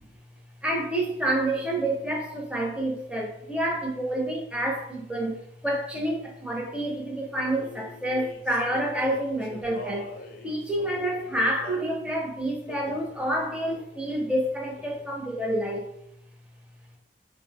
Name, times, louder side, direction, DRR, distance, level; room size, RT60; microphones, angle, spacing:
voice 1, 0.6-10.2 10.4-15.9, right 1 dB, 5° right, -1 dB, 0.5 m, -28 dB
Male singing, 7.5-11.9 12.7-13.1 13.7-14.0 14.3-15.2, left 3 dB, 50° left, 0.4 m, -43 dB
2.4 x 2.0 x 3.4 m, 0.75 s
head